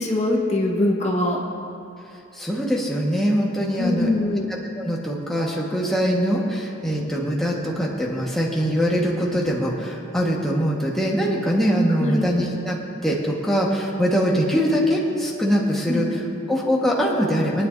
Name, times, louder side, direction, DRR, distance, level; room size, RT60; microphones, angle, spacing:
voice 1, 0.0-1.4 3.8-4.5 11.9-12.3 15.9-16.4, left 1 dB, 35° left, -2 dB, 1.3 m, -23 dB
voice 2, 2.3-4.1 4.5-12.8 13.0-16.2 16.5-17.7, equal, ahead, -5 dB, 1.3 m, -22 dB
23.0 x 9.7 x 2.6 m, 2.6 s
head